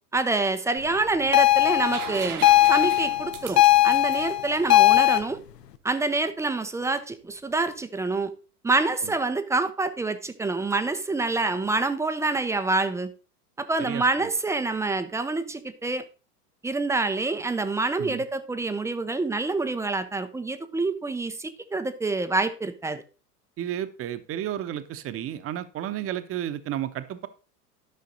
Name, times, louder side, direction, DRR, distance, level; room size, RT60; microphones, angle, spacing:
voice 1, 0.1-5.4 5.8-8.3 8.6-13.1 13.6-16.0 16.6-23.0, right 3 dB, 5° right, 10 dB, 0.5 m, -27 dB
sound 1, 1.3-5.2, left 16 dB, 80° left, 0.7 m, -19 dB
sound 2, 1.9-5.6 7.5-7.6, right 11 dB, 60° right, 1.2 m, -40 dB
voice 2, 13.8-14.3 18.0-18.2 23.6-27.3, right 11 dB, 30° right, 12 dB, 0.9 m, -32 dB
11.5 x 5.7 x 3.9 m, 0.34 s
hypercardioid pair, 90°, 48 cm